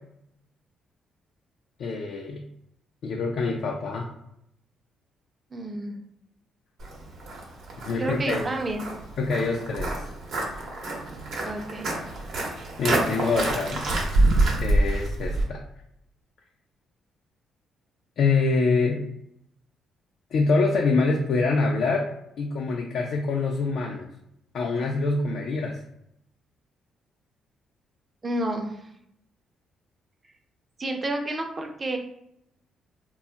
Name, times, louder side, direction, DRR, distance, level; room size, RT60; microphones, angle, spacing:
voice 1, 1.8-2.4 3.0-4.1 7.9-8.5 9.2-10.1 12.8-13.8 14.6-15.6 18.2-19.0 20.3-22.1 22.4-24.1 24.5-25.8, left 3 dB, 70° left, 0 dB, 0.4 m, -25 dB
voice 2, 5.5-6.0 8.0-8.8 11.4-11.9 28.2-28.9 30.8-32.0, right 1 dB, 30° right, 3 dB, 0.5 m, -30 dB
Walk footsteps, 6.8-15.4, right 2 dB, 70° right, 0.8 m, -27 dB
2.3 x 2.0 x 3.8 m, 0.77 s
cardioid pair, 90°, 0 cm